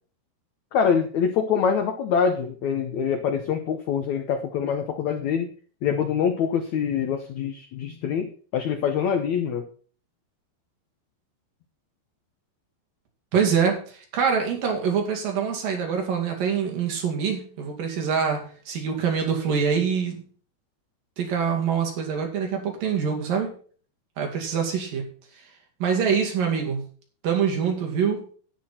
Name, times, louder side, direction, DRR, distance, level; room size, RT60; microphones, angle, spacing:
voice 1, 0.7-5.5 5.8-9.7, left 7 dB, 90° left, 7 dB, 1.6 m, -25 dB
voice 2, 13.3-18.4 18.7-20.2 21.2-23.5 24.2-25.1 25.8-26.8 27.2-28.2, right 6 dB, 60° right, 2 dB, 4.0 m, -25 dB
11.0 x 9.6 x 4.3 m, 0.43 s
omnidirectional pair, 4.7 m